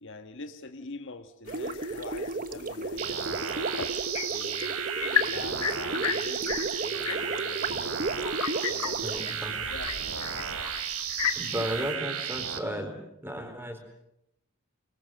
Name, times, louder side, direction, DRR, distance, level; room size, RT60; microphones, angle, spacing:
voice 1, 0.0-3.8 4.3-8.2 8.7-10.3 11.5-12.1, left 3 dB, 55° left, 8 dB, 1.5 m, -45 dB
sound 1, 1.5-12.0, left 7 dB, 90° left, 1.6 m, -35 dB
Gurgling, 1.5-9.8, right 3 dB, 40° right, 1.1 m, -34 dB
sound 2, 3.0-12.6, right 8 dB, 75° right, 2.9 m, -34 dB
voice 2, 9.0-9.6 11.4-12.9 13.2-13.8, equal, 10° right, 5 dB, 4.4 m, -34 dB
24.5 x 24.0 x 7.8 m, 0.81 s
head